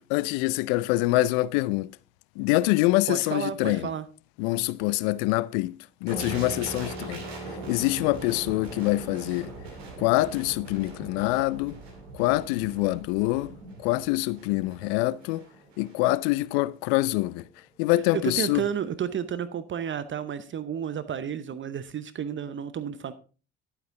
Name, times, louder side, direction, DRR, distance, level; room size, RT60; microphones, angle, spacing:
voice 1, 0.0-1.9 2.4-3.9 4.4-9.5 10.0-11.8 12.1-13.5 13.8-15.4 15.8-17.4 17.8-18.6, left 19 dB, 70° left, 0.5 m, -25 dB
voice 2, 3.1-4.1 18.1-23.1, right 8 dB, 40° right, 0.8 m, -31 dB
sound 1, 6.1-15.3, right 1 dB, 25° right, 3.7 m, -43 dB
sound 2, 6.1-15.9 16.2-16.4, right 3 dB, 85° right, 2.5 m, -43 dB
11.0 x 8.5 x 3.7 m
hypercardioid pair, 55°, 31 cm